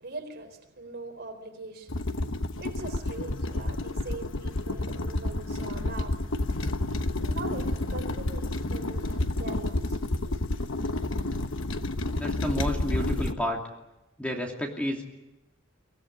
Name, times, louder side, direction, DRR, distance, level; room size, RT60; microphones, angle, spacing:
voice 1, 0.0-2.0 2.6-6.1 7.2-7.6 7.9-10.3 10.7-10.9, right 3 dB, 50° right, 4 dB, 4.2 m, -41 dB
sound 1, 1.9-13.3, left 2 dB, 70° left, 1.1 m, -30 dB
voice 2, 12.1-13.6 14.2-15.1, left 1 dB, 5° left, 1 dB, 2.8 m, -31 dB
24.0 x 17.0 x 10.0 m, 0.97 s
head